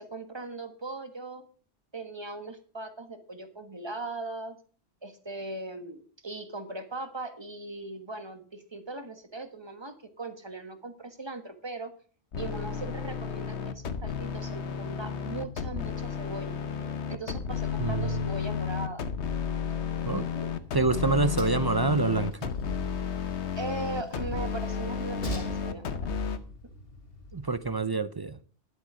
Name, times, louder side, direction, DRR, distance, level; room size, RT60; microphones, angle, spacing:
voice 1, 0.0-1.4 1.9-4.6 5.0-11.9 12.3-16.5 17.1-19.0 20.2-20.5 23.6-26.1, right 3 dB, 25° right, 1.4 m, -39 dB
sound 1, 12.3-26.4, left 6 dB, 70° left, 1.2 m, -32 dB
voice 2, 17.8-18.1 20.1-20.3 20.7-22.5 27.3-28.4, right 3 dB, 40° right, 0.3 m, -27 dB
Train, 20.0-27.7, left 1 dB, 55° left, 1.7 m, -44 dB
11.5 x 8.0 x 6.2 m
omnidirectional pair, 1.2 m